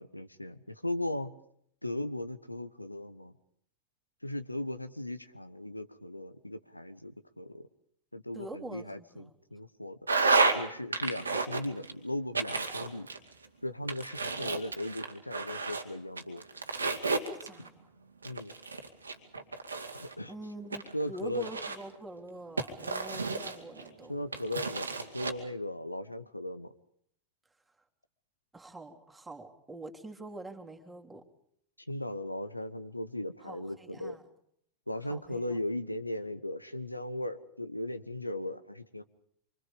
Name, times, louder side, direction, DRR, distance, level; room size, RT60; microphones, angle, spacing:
voice 1, 0.0-1.3 1.8-3.3 4.2-7.6 8.1-10.0 10.5-13.1 13.6-16.4 18.2-18.5 19.9-20.3 20.9-21.5 24.1-26.7 31.9-34.2 34.9-39.0, left 1 dB, 85° left, 11 dB, 1.1 m, -37 dB
voice 2, 8.3-9.3 17.1-17.9 20.3-20.8 21.1-24.1 28.5-31.2 33.4-34.2 35.0-35.6, right 2 dB, 10° right, 1 dB, 3.1 m, -45 dB
sound 1, 10.1-10.6 10.9-11.9 12.3-13.5 13.9-15.8 16.2-17.7 18.2-20.1 20.7-21.9 22.6-23.9 24.3-25.3, right 3 dB, 75° right, 2.2 m, -31 dB
27.0 x 25.0 x 5.2 m, 0.69 s
figure-of-eight pair, 90°, 0 cm